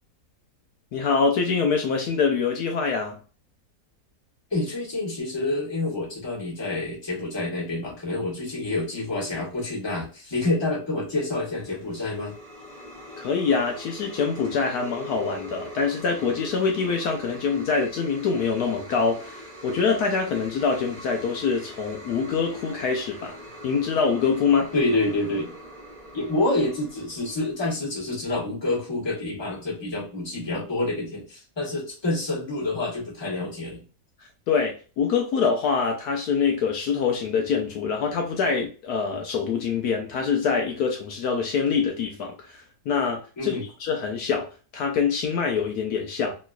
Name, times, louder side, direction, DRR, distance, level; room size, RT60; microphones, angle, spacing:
voice 1, 0.9-3.2 13.2-23.4 23.6-24.7 34.5-44.5 44.7-46.4, left 5 dB, 75° left, 1.1 m, -25 dB
voice 2, 4.5-12.3 24.7-25.5 26.1-33.8 43.4-43.6, left 2 dB, 15° left, 1.2 m, -28 dB
sound 1, 11.4-27.7, equal, 25° right, 1.0 m, -43 dB
3.1 x 3.0 x 2.3 m
omnidirectional pair, 1.7 m